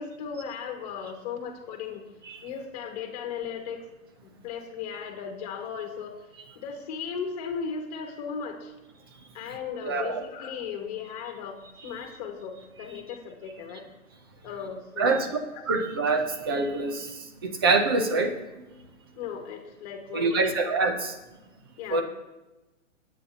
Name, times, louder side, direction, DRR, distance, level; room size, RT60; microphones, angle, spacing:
voice 1, 0.0-2.0 2.4-3.9 4.2-6.2 6.5-8.7 9.3-13.8 14.4-15.3 15.5-15.6 19.2-20.5 21.8-22.0, left 6 dB, 30° left, 3 dB, 1.7 m, -36 dB
voice 2, 9.8-10.2 15.0-15.3 15.7-17.1 17.4-18.7 20.1-21.1 21.9-22.0, right 3 dB, 20° right, 7 dB, 0.5 m, -25 dB
22.5 x 8.9 x 2.8 m, 1.0 s
hypercardioid pair, 160°, 40 cm